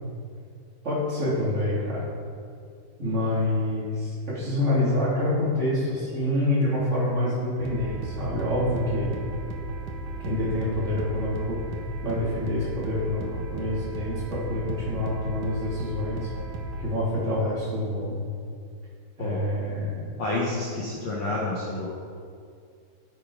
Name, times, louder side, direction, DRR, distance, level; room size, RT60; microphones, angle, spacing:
voice 1, 0.8-2.1 3.0-9.1 10.2-11.6 12.0-16.3 16.8-18.2 19.2-20.1, left 1 dB, 20° right, -8 dB, 2.9 m, -27 dB
sound 1, 7.6-16.8, right 2 dB, 85° right, 1.8 m, -35 dB
voice 2, 20.2-21.9, left 2 dB, 75° left, -6 dB, 1.5 m, -29 dB
11.5 x 8.8 x 5.0 m, 2.3 s
omnidirectional pair, 5.3 m